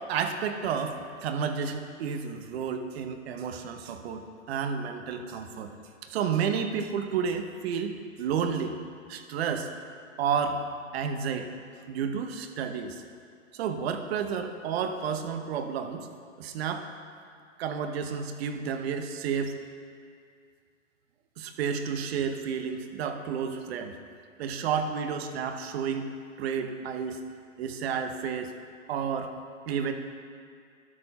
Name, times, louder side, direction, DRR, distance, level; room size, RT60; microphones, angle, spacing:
voice 1, 0.1-5.7 6.0-8.8 9.1-9.7 10.2-10.6 10.9-11.5 11.9-13.0 13.5-16.1 16.4-16.8 17.6-19.6 21.4-23.9 24.4-26.1 26.4-27.2 27.6-28.5 28.9-29.3 29.7-29.9, right 7 dB, 50° right, 7 dB, 0.9 m, -31 dB
12.0 x 4.3 x 5.6 m, 2.2 s
hypercardioid pair, 135°, 40 cm